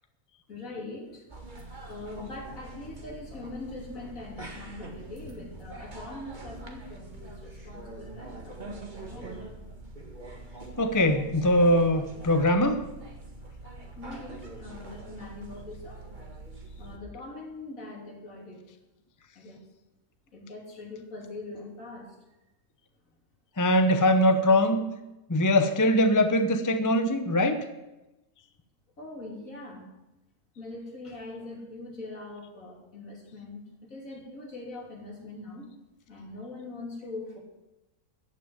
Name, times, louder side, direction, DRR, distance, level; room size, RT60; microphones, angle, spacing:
voice 1, 0.5-1.4 1.8-9.4 14.0-16.0 16.8-18.6 19.4-19.6 20.3-22.1 29.0-29.9 30.6-35.7 36.1-37.4, left 2 dB, 60° left, -2 dB, 3.7 m, -42 dB
sound 1, 1.3-17.0, right 2 dB, 30° right, 1.9 m, -44 dB
voice 2, 10.8-12.8 23.6-24.8 25.3-27.6, left 1 dB, 15° left, 7 dB, 0.7 m, -22 dB
14.5 x 6.2 x 9.8 m, 1.0 s
omnidirectional pair, 1.6 m